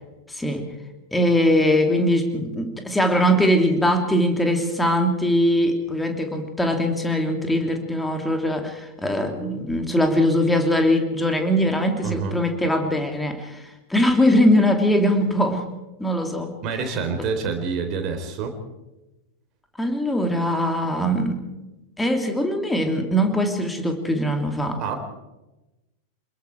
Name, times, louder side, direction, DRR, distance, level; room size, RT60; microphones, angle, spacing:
voice 1, 0.3-0.7 1.1-13.6 13.9-15.7 16.0-16.5 19.8-21.4 22.0-24.8, equal, 5° left, 4 dB, 3.1 m, -21 dB
voice 2, 12.0-12.4 16.6-18.5 24.8-24.9, right 5 dB, 35° right, 4 dB, 4.0 m, -27 dB
27.0 x 21.5 x 4.8 m, 1.0 s
figure-of-eight pair, 90°, 0 cm